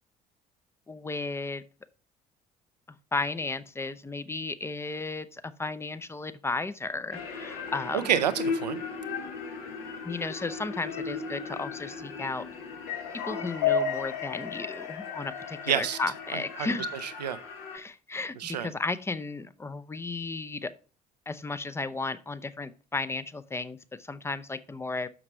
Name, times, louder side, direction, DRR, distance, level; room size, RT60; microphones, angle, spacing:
voice 1, 0.9-1.6 3.1-8.1 10.0-12.4 13.1-17.0 17.7-20.7 21.3-25.1, left 3 dB, 10° left, 0.5 m, -34 dB
sound 1, 7.1-17.8, left 6 dB, 65° left, 1.2 m, -34 dB
voice 2, 7.9-8.8 15.7-16.0 16.3-16.7 17.0-17.4 18.4-18.7, right 9 dB, 80° right, 0.5 m, -28 dB
6.5 x 5.9 x 4.4 m
figure-of-eight pair, 50°, 21 cm